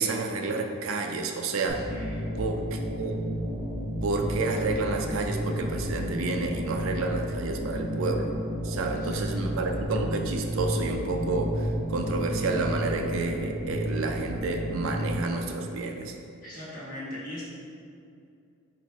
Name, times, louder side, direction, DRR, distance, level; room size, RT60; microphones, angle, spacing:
voice 1, 0.0-1.9 2.4-3.2 4.0-8.4 8.6-16.1, right 3 dB, 70° right, 3 dB, 0.4 m, -30 dB
sound 1, 1.7-15.2, equal, 40° right, 0.7 m, -32 dB
voice 2, 1.9-2.2 9.0-9.2 16.4-17.4, left 1 dB, 40° left, -8 dB, 1.2 m, -39 dB
4.2 x 2.2 x 4.6 m, 2.5 s
head